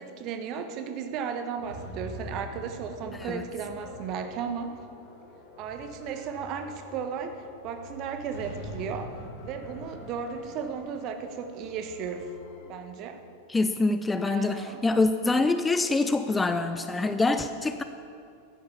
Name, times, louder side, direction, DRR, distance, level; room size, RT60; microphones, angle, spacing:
voice 1, 0.0-4.8 5.6-9.1 9.4-12.3 12.7-13.2 14.2-14.8, right 6 dB, 40° right, 7 dB, 1.3 m, -35 dB
sound 1, 1.1-12.7, left 2 dB, 40° left, 3.5 m, -48 dB
sound 2, 1.7-5.3 8.3-12.1, equal, 65° left, 3.4 m, -44 dB
voice 2, 13.5-17.8, left 3 dB, 10° left, 9 dB, 0.5 m, -25 dB
12.5 x 10.5 x 7.1 m, 2.5 s
figure-of-eight pair, 90°, 0 cm